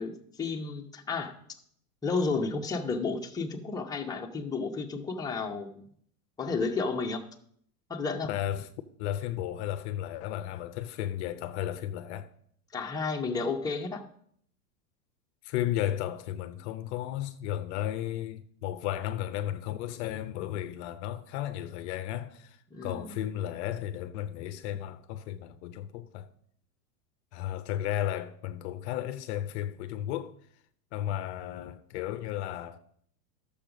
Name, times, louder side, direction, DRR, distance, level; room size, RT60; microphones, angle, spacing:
voice 1, 0.0-1.3 2.0-5.9 6.4-7.2 7.9-8.3 12.7-14.0 22.7-23.2, left 4 dB, 10° left, 0.8 m, -32 dB
voice 2, 8.3-8.7 9.0-12.3 15.4-26.3 27.3-30.3 30.9-32.8, left 12 dB, 45° left, 0.6 m, -34 dB
12.0 x 7.0 x 5.0 m
supercardioid pair, 145°, 48 cm